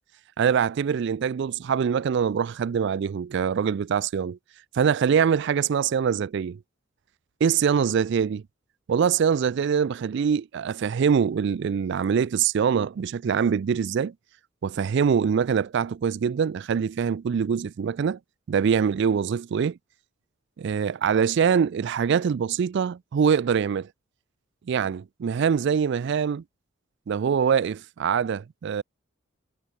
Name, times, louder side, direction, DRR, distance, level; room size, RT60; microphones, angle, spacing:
voice 1, 0.4-4.4 4.7-6.6 7.4-8.4 8.9-14.1 14.6-18.2 18.5-19.8 20.6-23.9 24.7-26.4 27.1-28.8, right 7 dB, 60° right, 0.3 m, -24 dB
head